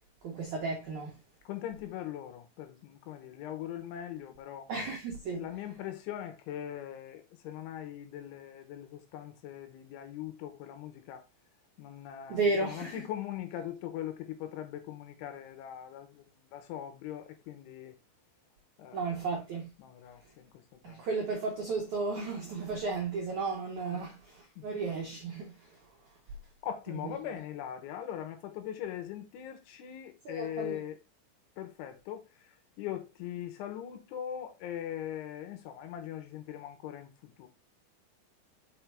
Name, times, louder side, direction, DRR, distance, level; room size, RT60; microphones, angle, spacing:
voice 1, 0.2-1.2 4.7-5.5 12.3-13.0 18.9-19.7 20.8-25.8 27.0-27.1 30.2-30.8, right 3 dB, 90° right, 1.6 m, -34 dB
voice 2, 1.5-4.7 5.3-11.3 11.8-17.9 18.8-19.2 19.8-21.0 23.9-24.1 24.6-24.8 26.6-31.0 31.6-37.5, left 11 dB, 80° left, 3.1 m, -41 dB
6.0 x 5.9 x 3.4 m
omnidirectional pair, 5.8 m